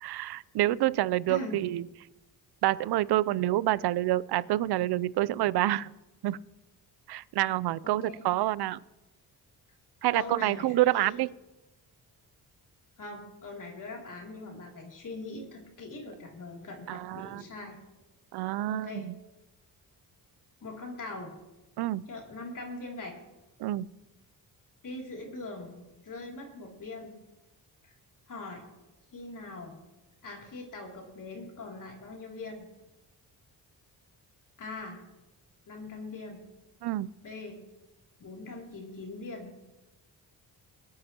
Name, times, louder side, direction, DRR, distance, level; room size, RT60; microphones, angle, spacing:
voice 1, 0.0-1.8 2.6-5.9 6.2-6.4 7.1-8.8 10.0-11.3 16.9-17.4 18.3-19.1 21.8-22.0 23.6-23.9 36.8-37.1, right 15 dB, 80° right, 20 dB, 0.5 m, -27 dB
voice 2, 1.3-1.6 7.8-8.2 10.1-11.2 13.0-17.8 18.7-19.1 20.6-21.3 22.1-23.2 24.8-27.2 27.8-27.9 28.3-28.6 29.1-29.8 30.2-32.7 34.6-35.0 35.7-36.4 37.2-37.6 38.2-39.5, left 2 dB, 55° left, 0 dB, 2.8 m, -41 dB
23.5 x 8.6 x 2.9 m, 1.1 s
cardioid pair, 85°, 39 cm